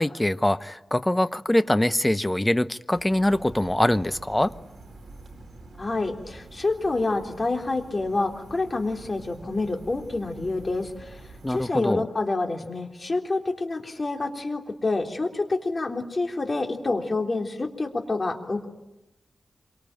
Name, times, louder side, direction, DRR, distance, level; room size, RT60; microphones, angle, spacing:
voice 1, 0.0-4.5 11.4-12.1, left 1 dB, 15° left, 0.9 m, -23 dB
sound 1, 2.9-11.7, right 2 dB, 55° right, 5.6 m, -46 dB
voice 2, 5.8-11.1 11.5-18.7, left 3 dB, 35° left, 3.6 m, -27 dB
27.0 x 24.5 x 9.0 m
wide cardioid pair, 105°, 0 cm